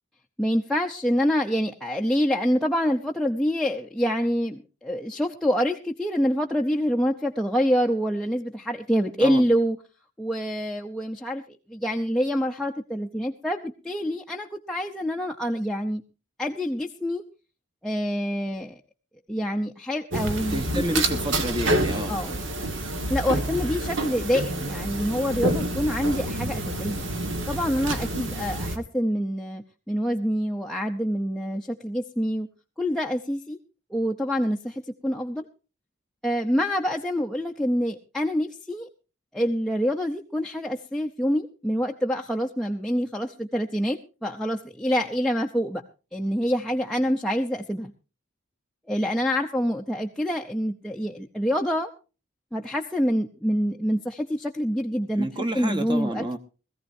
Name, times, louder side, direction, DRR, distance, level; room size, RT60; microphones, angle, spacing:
voice 1, 0.4-9.8 10.2-11.4 11.7-16.0 16.4-17.2 17.8-18.8 19.3-21.0 22.1-22.4 23.1-27.0 27.5-32.5 32.8-33.6 33.9-35.4 36.2-38.9 39.3-45.8 46.1-47.9 48.9-51.9 52.5-55.3 55.5-56.4, equal, 5° left, 0 dB, 0.6 m, -26 dB
sound 1, 20.1-28.8, right 1 dB, 65° right, 1.7 m, -28 dB
voice 2, 20.5-22.2 55.2-56.4, right 1 dB, 25° right, 9 dB, 1.1 m, -29 dB
21.0 x 15.0 x 2.7 m, 0.33 s
head